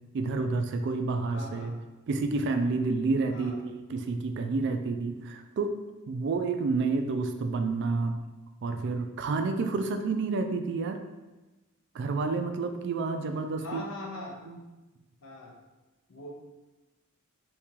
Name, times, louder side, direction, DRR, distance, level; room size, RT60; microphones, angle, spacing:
voice 1, 0.1-1.7 2.1-5.7 6.1-8.2 8.6-11.0 11.9-13.8 14.5-14.6, right 3 dB, 55° right, 7 dB, 0.3 m, -29 dB
voice 2, 1.3-1.8 3.3-3.6 13.6-14.4 15.2-15.6 16.1-16.3, left 2 dB, 65° left, -1 dB, 0.7 m, -41 dB
2.9 x 2.8 x 3.6 m, 1.1 s
head